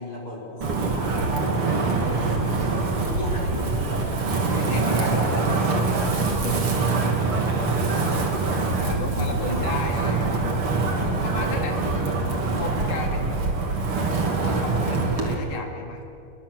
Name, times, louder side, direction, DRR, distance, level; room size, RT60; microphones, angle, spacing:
voice 1, 0.0-1.6 2.2-2.7 3.0-4.0 4.5-5.5 8.0-8.4 9.0-10.2, left 1 dB, 25° left, -4 dB, 5.5 m, -34 dB
Wind, 0.6-15.3, right 3 dB, 45° right, 3.0 m, -24 dB
voice 2, 2.0-2.4 3.2-3.5 4.5-6.8 8.8-10.3 10.8-12.2 12.6-13.4 14.4-16.2, left 2 dB, 70° left, 2 dB, 4.1 m, -35 dB
29.0 x 21.5 x 6.8 m, 2.6 s
omnidirectional pair, 3.8 m